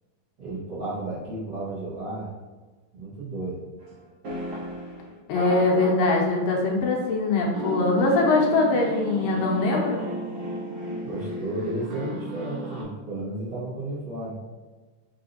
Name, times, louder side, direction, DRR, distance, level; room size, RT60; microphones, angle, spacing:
voice 1, 0.4-2.3 2.9-3.6 11.0-14.4, right 2 dB, 45° right, -12 dB, 1.5 m, -33 dB
sound 1, 3.8-3.9 4.2-6.8 7.5-12.8, right 1 dB, 75° right, 0.9 m, -34 dB
voice 2, 5.3-10.0, left 3 dB, 85° left, -1 dB, 2.3 m, -22 dB
4.9 x 3.8 x 2.7 m, 1.3 s
omnidirectional pair, 3.9 m